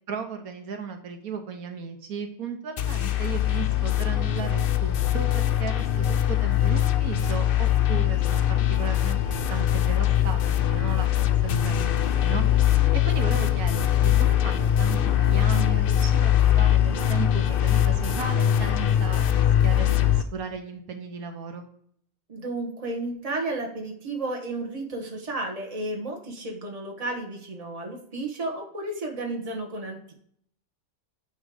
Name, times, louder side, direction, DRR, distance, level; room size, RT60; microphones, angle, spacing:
voice 1, 0.1-9.2 9.5-21.7, right 5 dB, 75° right, 6 dB, 1.3 m, -36 dB
sound 1, 2.8-20.2, left 10 dB, 65° left, 0.5 m, -22 dB
voice 2, 22.3-30.1, right 2 dB, 25° right, 0 dB, 1.4 m, -32 dB
9.2 x 3.2 x 4.9 m, 0.65 s
omnidirectional pair, 1.5 m